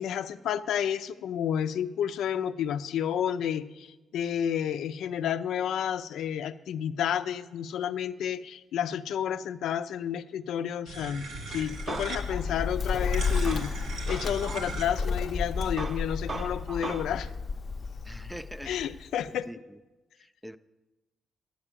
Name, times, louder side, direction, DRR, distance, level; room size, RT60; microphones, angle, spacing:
voice 1, 0.0-13.7 14.1-17.3 18.6-19.5, left 9 dB, 90° left, 0.4 m, -31 dB
sound 1, 10.9-15.3, right 2 dB, 75° right, 2.1 m, -40 dB
Bird, 11.5-19.3, left 4 dB, 40° left, 0.6 m, -32 dB
Male speech man speaking, 11.5-15.2 15.6-17.3, right 3 dB, 30° right, 0.7 m, -40 dB
voice 2, 18.0-18.7 19.3-19.6 20.2-20.6, equal, ahead, 0.3 m, -43 dB
9.8 x 7.5 x 7.3 m
cardioid pair, 135°, 0 cm